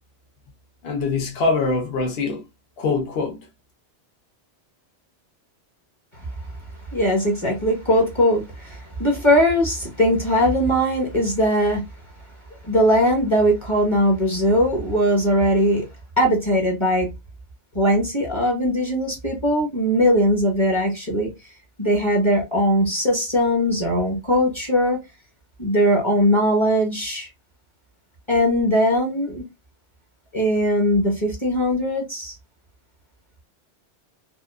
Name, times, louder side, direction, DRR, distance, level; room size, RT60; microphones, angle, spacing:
voice 1, 0.8-2.4 2.8-3.4, left 3 dB, 60° left, 1.1 m, -23 dB
voice 2, 6.9-11.8 12.7-15.8 16.2-17.1 17.7-21.3 21.8-25.0 25.6-27.3 28.3-29.4 30.3-32.3, equal, 25° left, 0.9 m, -20 dB
2.8 x 2.3 x 2.3 m
omnidirectional pair, 1.2 m